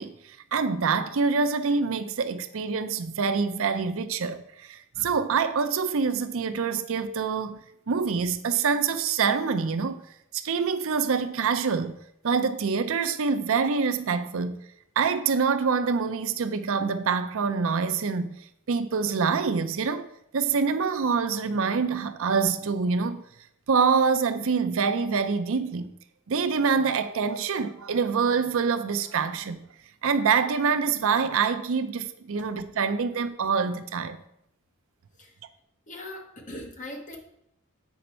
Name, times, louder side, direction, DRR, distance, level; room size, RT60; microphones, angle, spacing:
voice 1, 0.0-10.0 10.3-12.0 12.2-14.6 15.0-18.3 18.7-23.2 23.7-25.9 26.3-29.6 30.0-34.2, right 5 dB, 70° right, 0.5 m, -26 dB
voice 2, 35.9-37.2, left 1 dB, 35° left, 1.3 m, -40 dB
8.1 x 5.1 x 4.4 m
head